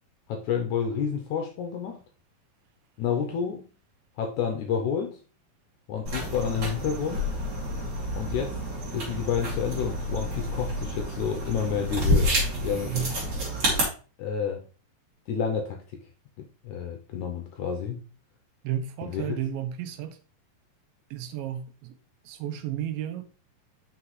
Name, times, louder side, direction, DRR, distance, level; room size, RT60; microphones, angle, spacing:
voice 1, 0.3-2.0 3.0-3.7 4.2-5.2 5.9-7.3 8.1-8.6 8.9-12.3 12.6-13.0 14.2-14.6 15.3-15.8 16.4-18.0 19.1-19.4, left 7 dB, 75° left, 1.8 m, -30 dB
sound 1, 6.1-13.8, equal, 40° right, 3.2 m, -29 dB
voice 2, 18.6-20.2 21.1-21.9 22.3-23.2, right 10 dB, 90° right, 2.5 m, -32 dB
6.0 x 5.7 x 3.0 m
omnidirectional pair, 4.1 m